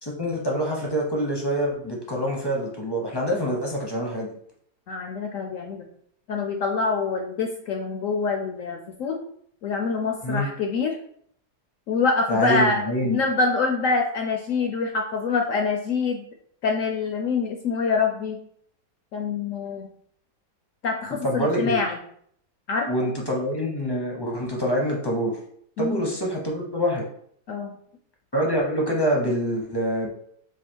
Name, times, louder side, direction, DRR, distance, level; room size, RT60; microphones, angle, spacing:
voice 1, 0.0-4.3 10.2-10.5 12.3-13.2 21.2-21.8 22.9-25.3 25.8-27.0 28.3-30.1, equal, 25° left, -1 dB, 0.5 m, -25 dB
voice 2, 4.9-5.9 6.3-9.2 9.6-11.0 11.9-12.8 13.1-16.3 16.6-18.4 19.1-19.9 20.8-22.0 22.7-23.1 25.8-26.1 27.5-27.7, left 4 dB, 70° left, 3 dB, 0.8 m, -25 dB
4.7 x 2.4 x 4.5 m, 0.65 s
omnidirectional pair, 1.8 m